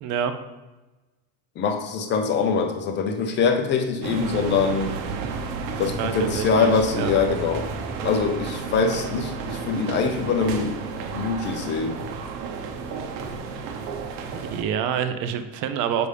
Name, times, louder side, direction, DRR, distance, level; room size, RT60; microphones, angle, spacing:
voice 1, 0.0-0.3 6.0-7.1 14.4-16.1, right 8 dB, 40° right, 9 dB, 0.4 m, -27 dB
voice 2, 1.6-5.0 5.8-7.7 8.0-10.8 11.1-12.0, left 5 dB, 25° left, 5 dB, 0.5 m, -23 dB
sound 1, 4.0-14.6, right 5 dB, 85° right, 1.0 m, -32 dB
6.8 x 5.4 x 3.3 m, 1.1 s
cardioid pair, 155°, 49 cm